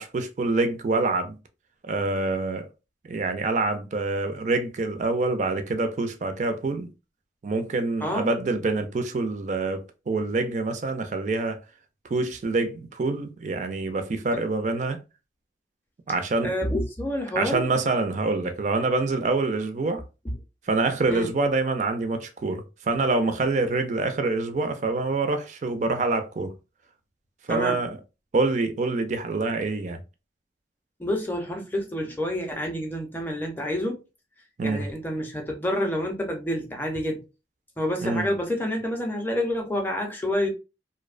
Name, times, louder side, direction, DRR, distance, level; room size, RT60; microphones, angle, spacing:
voice 1, 0.0-1.4 1.8-2.7 3.0-6.9 7.4-11.6 12.1-15.0 16.1-16.5 17.4-20.0 20.7-26.5 27.5-28.0 28.3-30.0 34.6-34.8 38.0-38.3, right 3 dB, 40° right, 0.3 m, -26 dB
voice 2, 16.4-17.7 20.2-20.3 21.1-21.3 27.5-27.8 31.0-34.0 34.6-37.2 37.8-40.5, left 1 dB, 10° left, 0.5 m, -28 dB
2.6 x 2.0 x 2.4 m
head